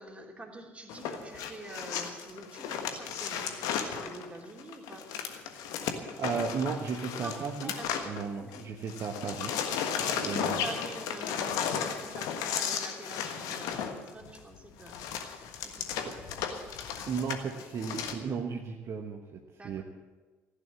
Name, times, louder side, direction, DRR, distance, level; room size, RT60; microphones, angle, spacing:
voice 1, 0.0-5.1 7.1-8.1 8.4-8.6 10.0-16.6 19.6-19.8, right 2 dB, 15° right, 0 dB, 3.1 m, -46 dB
sound 1, 0.9-8.6 8.9-18.1, left 8 dB, 55° left, 1.4 m, -35 dB
voice 2, 6.2-7.7 8.0-9.9 10.2-10.6 17.1-19.8, right 6 dB, 45° right, 2 dB, 1.2 m, -35 dB
15.5 x 10.0 x 7.8 m, 1.2 s
figure-of-eight pair, 55°, 7 cm